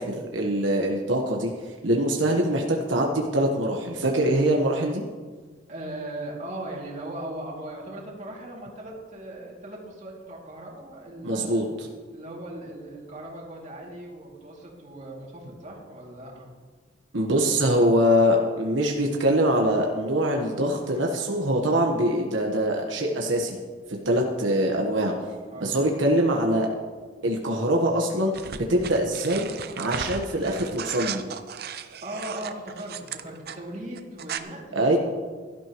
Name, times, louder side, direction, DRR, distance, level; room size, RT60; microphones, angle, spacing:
voice 1, 0.0-1.5 1.8-5.0 11.2-11.9 17.1-23.6 24.0-25.2 25.6-26.7 27.2-29.5 29.8-31.2 34.7-35.0, equal, 85° right, 0 dB, 1.3 m, -23 dB
voice 2, 5.7-11.7 12.1-16.5 24.3-24.4 25.5-25.7 32.0-35.0, right 1 dB, 40° right, -3 dB, 2.6 m, -38 dB
sound 1, 28.3-33.6 33.9-34.4, right 7 dB, 55° right, 0.6 m, -36 dB
16.0 x 12.5 x 3.1 m, 1.5 s
head